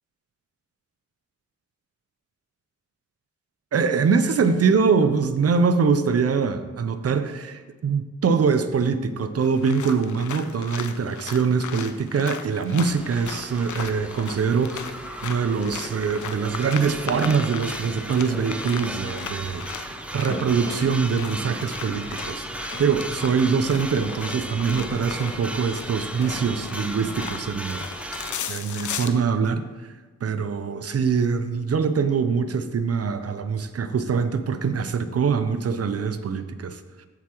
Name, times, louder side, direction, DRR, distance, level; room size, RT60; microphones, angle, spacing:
voice 1, 3.7-15.0 15.2-29.9 30.2-37.1, right 5 dB, 55° right, 10 dB, 0.6 m, -24 dB
sound 1, 9.4-29.1, left 8 dB, 80° left, 0.5 m, -37 dB
sound 2, 12.9-28.4, equal, 5° right, 0.6 m, -36 dB
sound 3, 19.9-21.5 22.1-25.3, right 1 dB, 25° right, 1.8 m, -41 dB
13.5 x 4.7 x 3.0 m, 1.3 s
cardioid pair, 70°, 29 cm